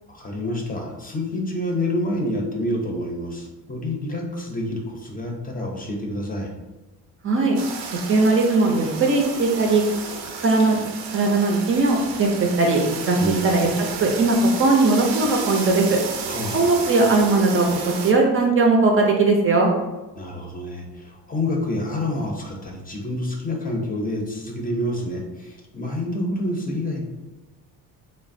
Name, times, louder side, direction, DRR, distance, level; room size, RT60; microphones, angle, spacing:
voice 1, 0.1-6.5 13.2-13.4 16.3-16.7 20.2-27.0, left 1 dB, 25° left, 0 dB, 0.6 m, -28 dB
voice 2, 7.2-7.6 8.1-9.8 10.4-10.8 11.1-13.2 13.4-16.0 16.5-17.7 18.0-19.7, right 3 dB, 35° right, 1 dB, 0.5 m, -19 dB
sound 1, 7.5-18.1, right 5 dB, 85° right, 0.5 m, -32 dB
3.2 x 2.0 x 2.5 m, 1.1 s
cardioid pair, 85°, 37 cm